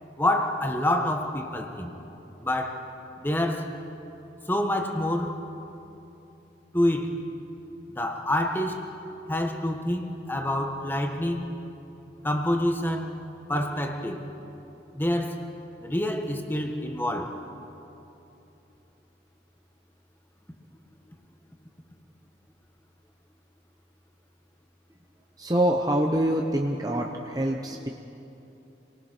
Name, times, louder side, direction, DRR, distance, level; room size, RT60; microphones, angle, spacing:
voice 1, 0.2-1.9 2.4-2.8 3.2-3.7 4.5-5.4 6.7-7.2 7.9-8.9 9.3-11.4 12.2-13.1 13.5-14.2 14.9-15.5 15.8-17.4, left 1 dB, 10° left, 4 dB, 1.5 m, -27 dB
voice 2, 25.4-27.9, right 1 dB, 20° right, 1 dB, 1.0 m, -25 dB
29.0 x 19.0 x 6.2 m, 3.0 s
head